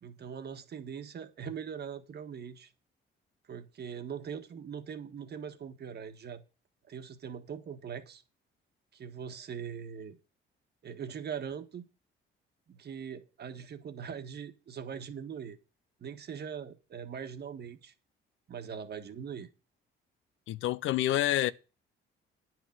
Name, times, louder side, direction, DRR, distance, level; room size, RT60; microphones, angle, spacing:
voice 1, 0.0-2.7 3.5-6.4 6.9-8.2 8.9-10.2 10.8-11.9 12.7-15.6 16.0-17.9 18.5-19.5, right 7 dB, 55° right, 1.5 m, -41 dB
voice 2, 20.5-21.5, left 14 dB, 85° left, 0.7 m, -28 dB
9.7 x 6.2 x 7.6 m
cardioid pair, 90°, 20 cm